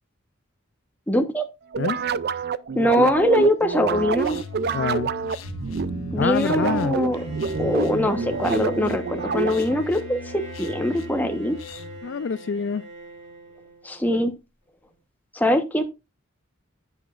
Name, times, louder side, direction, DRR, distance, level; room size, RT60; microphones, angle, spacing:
voice 1, 1.1-1.5 2.7-4.4 6.1-7.2 7.6-11.6 13.8-14.3 15.3-15.8, equal, 10° left, 1.1 m, -22 dB
sound 1, 1.7-9.8, right 5 dB, 50° right, 0.4 m, -27 dB
sound 2, 3.9-12.0, left 2 dB, 80° left, 1.3 m, -39 dB
voice 2, 4.7-5.1 6.1-7.0 12.0-12.8, left 6 dB, 60° left, 0.4 m, -26 dB
Bowed string instrument, 7.1-14.1, right 2 dB, 30° right, 3.3 m, -40 dB
10.5 x 8.0 x 2.5 m
head